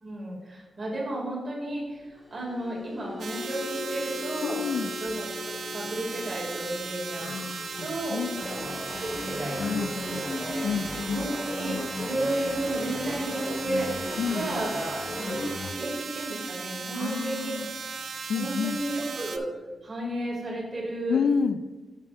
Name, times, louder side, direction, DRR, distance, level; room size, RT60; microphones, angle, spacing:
voice 1, 0.0-4.6 5.0-7.4 7.8-10.7 11.1-13.9 14.3-15.4 15.7-17.6 18.3-19.5 19.8-21.2, right 1 dB, 40° right, -3 dB, 2.3 m, -33 dB
sound 1, 2.0-18.4 18.8-19.1 19.4-19.6, left 4 dB, 15° left, 1.7 m, -44 dB
sound 2, 3.2-19.4, right 5 dB, 65° right, 0.6 m, -37 dB
voice 2, 4.4-4.9 7.2-8.4 9.6-9.9 10.6-11.3 14.2-14.5 16.9-17.7 18.3-18.8 21.1-21.6, left 6 dB, 85° left, 12 dB, 0.3 m, -29 dB
sound 3, 8.4-15.8, left 2 dB, 45° left, 0.8 m, -35 dB
9.7 x 7.2 x 2.5 m, 1.2 s
wide cardioid pair, 105°, 0 cm